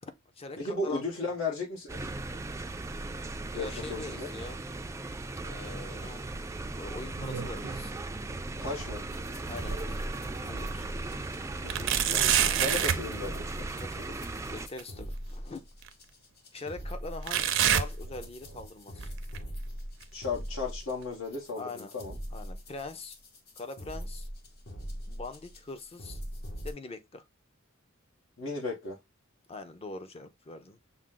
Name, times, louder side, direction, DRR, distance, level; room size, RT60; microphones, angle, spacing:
voice 1, 0.0-1.0 3.5-4.6 5.4-6.3 6.8-7.9 9.4-10.9 13.8-15.6 16.5-19.1 21.6-21.9 22.3-23.2 23.6-24.3 25.1-26.2 26.6-27.2 29.5-30.8, left 3 dB, 30° left, 0.6 m, -43 dB
voice 2, 0.6-2.1 3.5-4.3 8.6-9.0 11.6-13.7 20.1-22.2 28.4-29.0, left 3 dB, 75° left, 1.2 m, -35 dB
sound 1, 1.9-14.7, right 2 dB, 15° right, 0.3 m, -38 dB
sound 2, 6.9-7.8 8.2-10.1 10.6-10.7 11.7-13.1 14.8-14.9 15.8-15.9 17.3-18.7 19.0-19.4 20.0-20.1 21.0-21.1, right 9 dB, 65° right, 0.5 m, -29 dB
sound 3, 9.1-26.7, equal, 50° left, 1.0 m, -41 dB
6.2 x 2.1 x 3.7 m
head